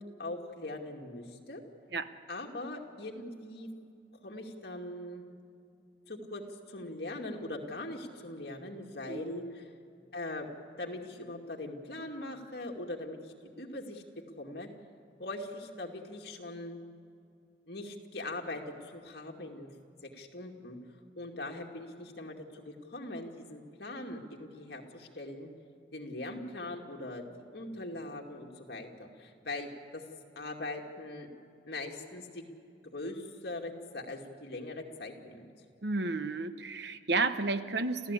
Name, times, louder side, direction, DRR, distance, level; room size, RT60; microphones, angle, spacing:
voice 1, 0.0-1.6 2.3-3.7 4.2-5.2 6.1-6.4 6.7-9.7 10.1-10.5 10.8-14.0 14.4-14.7 15.2-16.8 17.7-19.7 20.1-20.8 21.2-25.5 25.9-27.2 27.5-30.0 30.4-31.3 31.7-32.4 32.8-35.5, left 2 dB, 60° left, 2 dB, 2.4 m, -41 dB
voice 2, 35.8-38.1, right 3 dB, 70° right, 10 dB, 1.0 m, -32 dB
28.5 x 15.0 x 8.4 m, 2.5 s
head